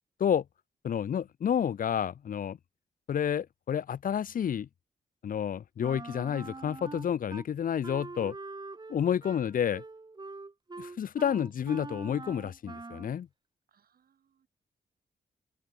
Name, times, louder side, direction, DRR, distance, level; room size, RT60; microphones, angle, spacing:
voice 1, 0.8-2.6 3.1-4.7 5.2-8.3 8.9-9.8 10.8-13.3, left 8 dB, 60° left, 0.7 m, -30 dB
Wind instrument woodwind instrument, 5.8-7.5 7.8-13.2, right 3 dB, 25° right, 2.9 m, -44 dB
voice 2, 11.3-11.6 13.7-14.5, right 8 dB, 75° right, 8.0 m, -68 dB
open air
cardioid pair, 80°, 16 cm